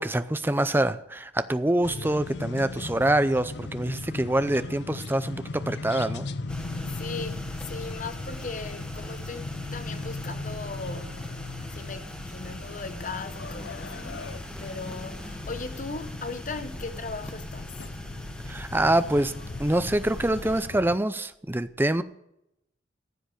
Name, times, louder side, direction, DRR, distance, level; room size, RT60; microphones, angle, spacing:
voice 1, 0.0-6.3 18.5-19.3 19.6-22.0, right 1 dB, 10° right, 0.5 m, -25 dB
sound 1, 1.8-21.0, left 3 dB, 60° left, 0.6 m, -38 dB
sound 2, 6.5-20.7, equal, 5° left, 1.2 m, -41 dB
voice 2, 6.9-11.3 11.7-14.3 14.6-17.8, left 4 dB, 40° left, 0.9 m, -38 dB
15.0 x 8.0 x 6.5 m
head